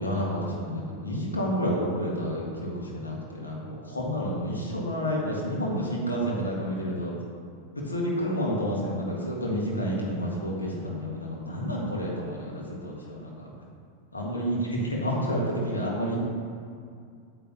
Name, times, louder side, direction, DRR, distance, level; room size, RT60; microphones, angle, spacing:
voice 1, 0.0-7.1 7.7-13.5 14.1-16.2, equal, 80° left, -3 dB, 1.8 m, -30 dB
8.7 x 8.0 x 3.0 m, 2.3 s
figure-of-eight pair, 90°, 0 cm